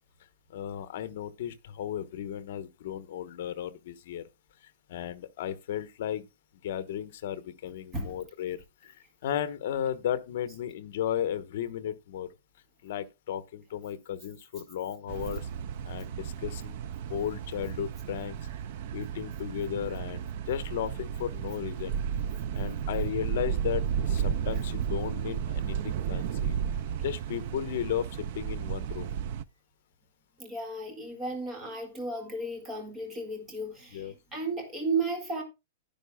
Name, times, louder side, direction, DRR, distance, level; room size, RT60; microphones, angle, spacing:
voice 1, 0.5-4.2 4.9-6.3 6.6-8.9 9.2-12.3 12.8-15.5 15.8-16.8 17.1-18.4 18.9-22.0 22.5-26.6 27.0-29.1 33.9-34.2, left 10 dB, 50° left, 1.1 m, -35 dB
sound 1, 15.1-29.4, right 8 dB, 45° right, 0.4 m, -33 dB
voice 2, 30.4-35.4, right 3 dB, 15° right, 1.8 m, -34 dB
11.0 x 10.5 x 2.2 m
supercardioid pair, 175°, 0 cm